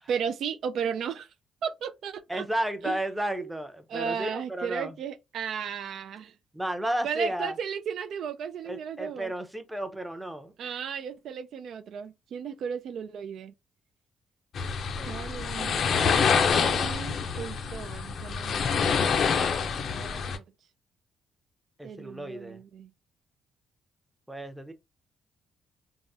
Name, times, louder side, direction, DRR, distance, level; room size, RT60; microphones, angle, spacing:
voice 1, 0.1-1.3 1.6-2.5 2.8-3.0 3.4-3.5 3.9-6.3 7.0-9.3 10.6-13.5 15.0-18.7 18.9-19.5 19.9-20.4 21.8-22.9, right 7 dB, 70° right, 0.3 m, -35 dB
voice 2, 2.3-4.9 6.5-7.5 8.7-10.7 15.0-15.4 21.8-22.6 24.3-24.7, right 1 dB, 5° right, 0.6 m, -33 dB
sound 1, 14.5-20.4, left 6 dB, 60° left, 0.5 m, -26 dB
3.5 x 2.0 x 2.7 m
cardioid pair, 90°, 0 cm